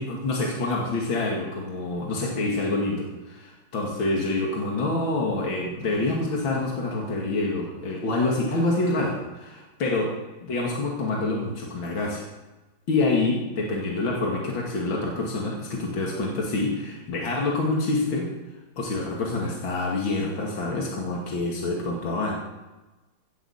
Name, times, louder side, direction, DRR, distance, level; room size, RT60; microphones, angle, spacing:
voice 1, 0.0-10.1 10.4-12.2 12.9-18.3 18.8-22.3, left 2 dB, 75° left, -2 dB, 3.0 m, -27 dB
17.0 x 7.4 x 7.3 m, 1.1 s
omnidirectional pair, 2.2 m